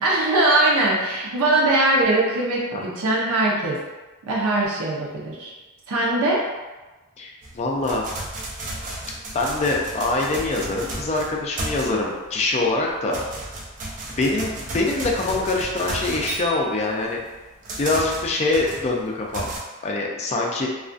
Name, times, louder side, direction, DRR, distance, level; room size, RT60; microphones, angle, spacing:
voice 1, 0.0-3.8 4.3-5.5 5.9-6.4, right 2 dB, 80° right, -4 dB, 0.6 m, -21 dB
voice 2, 7.2-8.0 9.3-13.2 14.1-17.2 17.8-19.5 19.8-20.7, left 2 dB, 30° left, -1 dB, 0.4 m, -24 dB
sound 1, 7.4-12.3 12.7-19.6, right 2 dB, 35° right, 0.4 m, -34 dB
2.3 x 2.2 x 2.5 m, 1.2 s
head